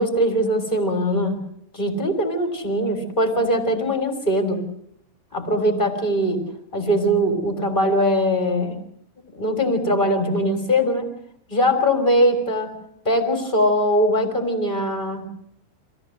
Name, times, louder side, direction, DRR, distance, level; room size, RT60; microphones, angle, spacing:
voice 1, 0.0-1.4 1.7-4.6 5.3-6.4 6.7-8.8 9.3-11.1 11.5-12.7 13.0-15.2, equal, 10° left, 6 dB, 2.6 m, -21 dB
26.0 x 16.5 x 7.9 m, 0.73 s
omnidirectional pair, 5.9 m